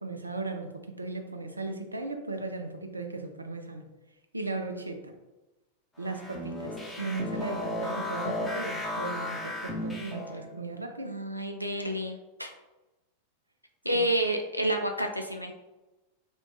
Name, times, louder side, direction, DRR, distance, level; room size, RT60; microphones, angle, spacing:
voice 1, 0.0-3.9 4.3-5.1 6.0-11.2, right 3 dB, 80° right, 5 dB, 0.3 m, -36 dB
sound 1, 6.0-10.5, left 1 dB, 10° left, 0.6 m, -34 dB
voice 2, 11.0-12.5 13.8-15.5, right 1 dB, 90° left, 4 dB, 0.3 m, -29 dB
2.5 x 2.1 x 3.0 m, 1.0 s
figure-of-eight pair, 90°, 0 cm